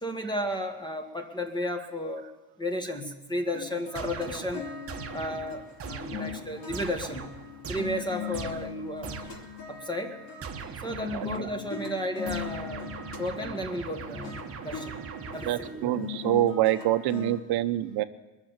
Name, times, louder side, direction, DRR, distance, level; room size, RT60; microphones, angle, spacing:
voice 1, 0.0-2.2 2.6-4.6 5.1-7.3 7.7-9.1 9.7-10.2 10.8-15.0 15.3-16.0, left 1 dB, 10° left, 5 dB, 1.7 m, -33 dB
sound 1, 3.5-17.4, left 7 dB, 50° left, 3.3 m, -40 dB
sound 2, 3.9-9.6 10.4-11.7 12.3-15.9, right 6 dB, 30° right, 1.2 m, -41 dB
voice 2, 11.1-11.5 15.4-18.0, right 14 dB, 55° right, 11 dB, 1.0 m, -26 dB
21.0 x 7.2 x 8.8 m, 1.1 s
supercardioid pair, 110°, 46 cm